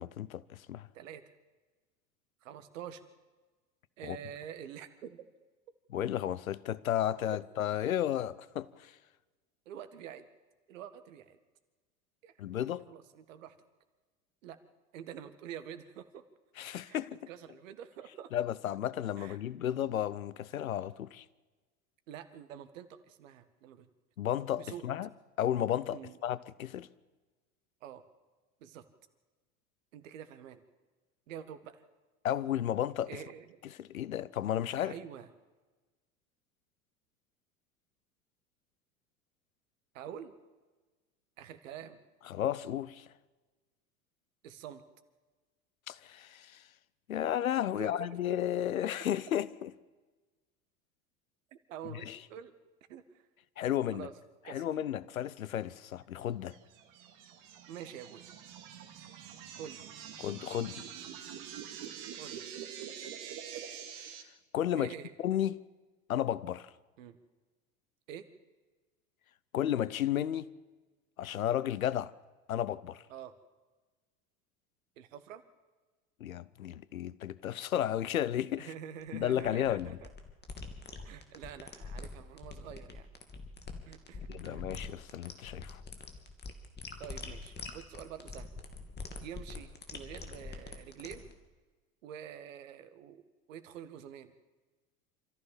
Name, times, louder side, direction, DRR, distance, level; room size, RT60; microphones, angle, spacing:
voice 1, 0.0-0.9 4.0-4.2 5.9-8.9 12.4-12.9 16.6-17.2 18.3-21.2 24.2-25.1 25.4-26.9 32.2-33.1 33.8-35.0 42.3-43.1 45.9-46.6 47.1-49.7 52.1-52.2 53.6-54.1 54.5-56.6 60.2-60.9 64.5-64.9 65.2-65.6 66.1-66.7 69.5-70.5 71.2-72.1 72.5-73.0 76.2-78.7 79.1-79.9 84.3-85.8, left 11 dB, 80° left, 0.9 m, -33 dB
voice 2, 0.9-1.3 2.4-3.0 4.0-5.2 9.6-10.3 10.7-11.4 12.2-13.6 14.4-14.6 14.9-16.2 16.9-17.0 17.3-18.3 19.2-19.4 22.1-23.9 24.6-24.8 25.9-26.2 27.8-28.0 28.6-28.8 29.9-30.6 31.3-31.8 33.1-33.6 34.8-35.3 39.9-40.3 41.4-42.0 44.4-44.8 47.7-48.2 51.7-52.5 52.9-53.3 53.9-54.1 54.4-54.7 57.7-58.3 59.6-59.9 62.2-62.4 64.8-65.1 67.0-67.2 68.1-68.3 73.1-73.3 75.0-75.4 78.6-80.1 81.0-83.1 83.9-84.6 87.0-88.5 89.2-91.3 92.0-93.2 93.5-94.3, right 9 dB, 65° right, 1.8 m, -47 dB
sound 1, 56.5-64.2, right 9 dB, 50° right, 2.5 m, -45 dB
sound 2, 79.0-91.3, left 4 dB, 25° left, 2.8 m, -44 dB
26.5 x 14.5 x 7.3 m
figure-of-eight pair, 75°, 41 cm